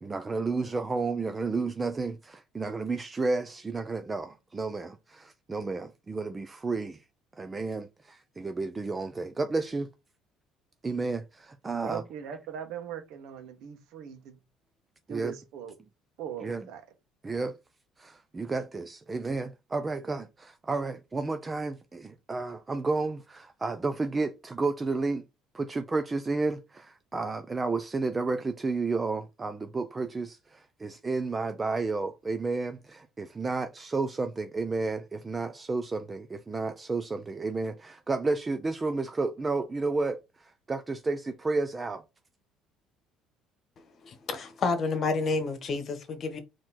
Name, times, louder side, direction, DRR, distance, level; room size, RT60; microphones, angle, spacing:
voice 1, 0.0-7.0 7.4-9.9 10.8-12.0 15.1-15.3 16.4-16.6 17.2-17.6 18.0-25.2 25.5-42.0, right 3 dB, 25° right, 0.5 m, -31 dB
voice 2, 11.8-14.4 15.1-15.7 16.2-16.8, right 8 dB, 75° right, 1.1 m, -40 dB
voice 3, 44.0-46.4, left 4 dB, 45° left, 1.2 m, -29 dB
4.2 x 3.0 x 4.1 m
supercardioid pair, 90°, 0 cm